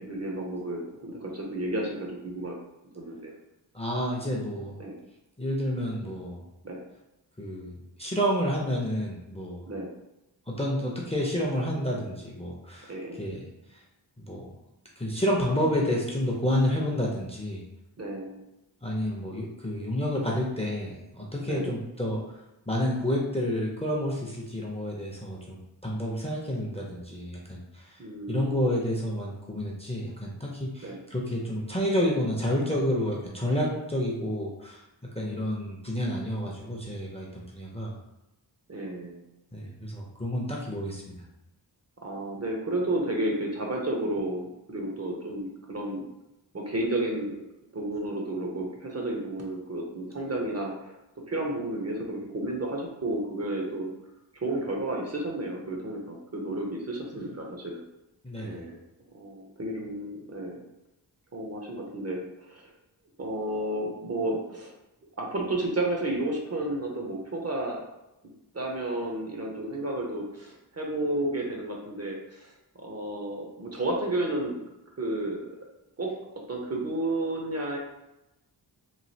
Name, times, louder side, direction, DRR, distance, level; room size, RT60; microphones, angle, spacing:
voice 1, 0.0-2.5 2.9-3.3 4.8-4.9 6.6-6.8 9.7-9.9 12.9-13.2 18.0-18.4 21.5-21.8 28.0-28.7 30.8-31.0 38.7-39.2 42.0-46.0 46.5-47.3 47.7-51.0 51.3-53.9 54.3-57.8 58.4-58.8 59.1-60.6 61.3-62.7 63.2-64.7 65.2-67.8 68.5-72.5 72.8-74.6 75.0-75.5 76.0-76.1 76.5-77.8, right 1 dB, 35° right, 0 dB, 0.6 m, -32 dB
voice 2, 3.7-4.8 5.4-6.4 7.4-9.7 10.5-13.4 14.2-14.5 15.0-17.6 18.8-22.2 22.7-28.0 28.3-34.8 35.1-37.9 39.5-41.1 58.2-58.6, equal, 15° left, -3 dB, 0.5 m, -29 dB
3.1 x 2.4 x 2.7 m, 0.92 s
wide cardioid pair, 95°, 43 cm